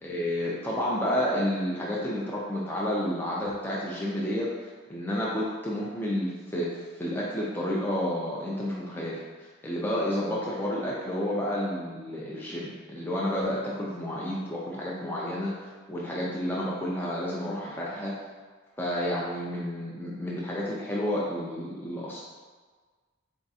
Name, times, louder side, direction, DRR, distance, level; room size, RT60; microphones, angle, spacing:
voice 1, 0.0-18.1 18.8-22.2, left 1 dB, 10° left, -6 dB, 0.4 m, -30 dB
4.0 x 3.4 x 2.7 m, 1.4 s
head